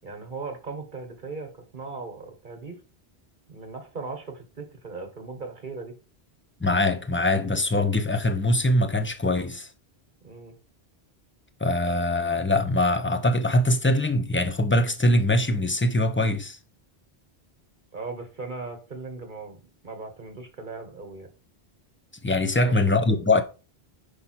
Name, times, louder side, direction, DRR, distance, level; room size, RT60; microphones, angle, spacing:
voice 1, 0.0-2.8 3.5-5.9 10.2-10.6 17.9-21.3 22.6-23.2, right 3 dB, 50° right, 1.4 m, -38 dB
voice 2, 6.6-9.7 11.6-16.6 22.2-23.4, left 1 dB, 15° left, 0.5 m, -22 dB
5.6 x 5.0 x 4.3 m
omnidirectional pair, 1.1 m